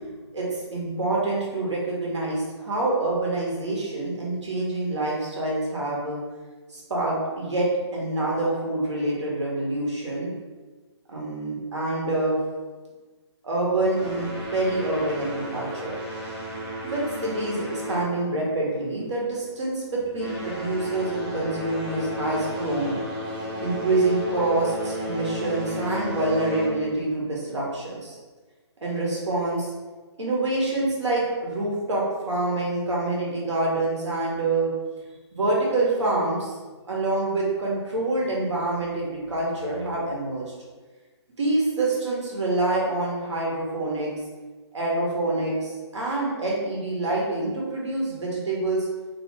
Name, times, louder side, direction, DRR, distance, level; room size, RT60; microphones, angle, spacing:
voice 1, 0.3-6.2 6.7-10.3 11.1-12.4 13.4-16.0 16.8-23.0 23.6-28.2 28.8-29.7 30.2-34.7 35.3-36.6 36.9-40.5 41.4-44.1 44.7-48.9, right 2 dB, 85° right, -4 dB, 1.1 m, -26 dB
sound 1, 13.9-18.8 19.1-19.4 20.0-27.0, equal, 20° right, 0.5 m, -33 dB
2.4 x 2.4 x 2.9 m, 1.3 s
hypercardioid pair, 160°, 15 cm